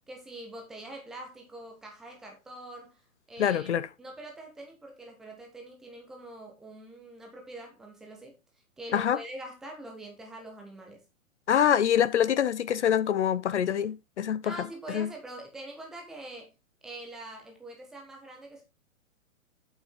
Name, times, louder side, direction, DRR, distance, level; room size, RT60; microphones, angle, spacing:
voice 1, 0.1-3.0 3.3-3.7 4.0-8.4 8.8-11.0 14.4-16.5 16.8-18.6, right 1 dB, ahead, 0.4 m, -44 dB
voice 2, 3.4-3.9 8.9-9.2 11.5-14.6 14.9-15.1, left 9 dB, 55° left, 0.9 m, -25 dB
8.5 x 7.0 x 3.6 m
figure-of-eight pair, 115°, 42 cm